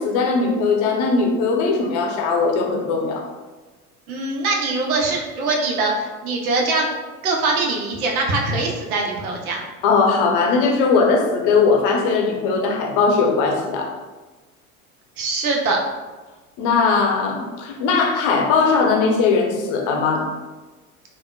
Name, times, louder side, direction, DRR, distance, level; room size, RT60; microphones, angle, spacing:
voice 1, 0.0-3.2 9.8-13.9 16.6-20.3, left 4 dB, 45° left, 1 dB, 0.7 m, -19 dB
voice 2, 4.1-6.9 7.2-9.6 15.2-15.8, right 3 dB, 75° right, 0 dB, 0.8 m, -22 dB
3.5 x 2.4 x 2.2 m, 1.2 s
hypercardioid pair, 80°, 43 cm